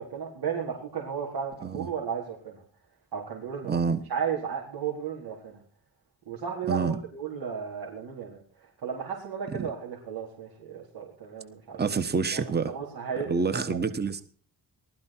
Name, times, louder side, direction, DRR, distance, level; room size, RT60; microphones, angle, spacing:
voice 1, 0.0-2.6 3.1-3.8 4.1-5.6 6.3-8.4 8.8-11.8 12.3-13.8, right 7 dB, 80° right, 4.3 m, -34 dB
voice 2, 3.7-4.0 6.7-7.0 9.5-9.7 11.8-12.7 13.2-14.2, right 5 dB, 25° right, 1.2 m, -27 dB
19.5 x 13.0 x 4.5 m
wide cardioid pair, 175°, 38 cm